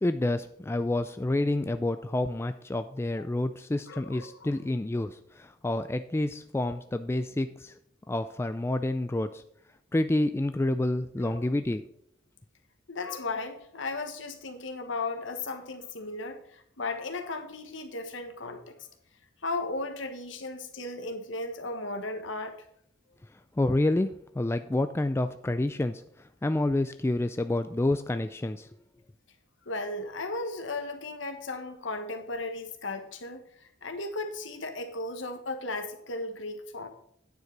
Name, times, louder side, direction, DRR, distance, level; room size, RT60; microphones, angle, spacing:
voice 1, 0.0-7.7 8.1-9.4 9.9-11.9 23.6-26.0 26.4-28.7, left 1 dB, 15° left, 9 dB, 0.3 m, -28 dB
voice 2, 3.9-4.5 11.2-11.5 12.9-18.9 19.4-22.5 29.6-36.9, left 2 dB, 70° left, 6 dB, 1.4 m, -36 dB
9.5 x 7.5 x 4.6 m, 0.67 s
head